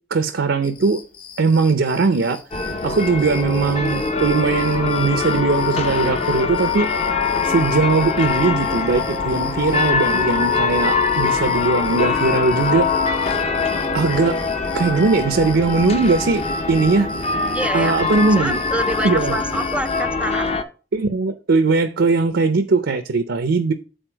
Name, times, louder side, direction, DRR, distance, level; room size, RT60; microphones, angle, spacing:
voice 1, 0.1-1.0 1.4-2.4 2.8-6.9 7.4-12.9 13.9-14.4 14.7-17.1 17.7-18.6 19.0-19.4 20.9-23.7, right 4 dB, 85° right, 0.6 m, -19 dB
sound 1, 0.6-20.0, left 6 dB, 50° left, 1.7 m, -42 dB
sound 2, 2.5-20.6, left 3 dB, 35° left, 0.7 m, -24 dB
sound 3, 5.3-13.4, left 11 dB, 85° left, 0.3 m, -26 dB
voice 2, 17.5-18.0 18.4-20.5, right 1 dB, 5° right, 0.4 m, -26 dB
7.9 x 4.1 x 4.5 m
head